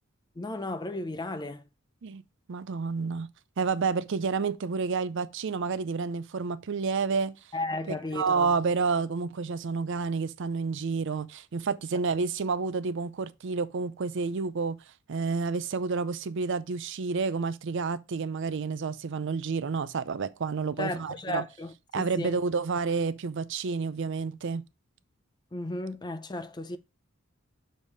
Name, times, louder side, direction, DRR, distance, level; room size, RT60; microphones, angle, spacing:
voice 1, 0.4-1.6 7.5-8.5 20.8-22.4 25.5-26.8, left 2 dB, 20° left, 0.5 m, -34 dB
voice 2, 2.5-3.3 3.6-7.3 7.9-14.8 15.1-21.4 21.9-24.6, right 4 dB, 65° right, 0.5 m, -29 dB
6.4 x 3.5 x 5.4 m
head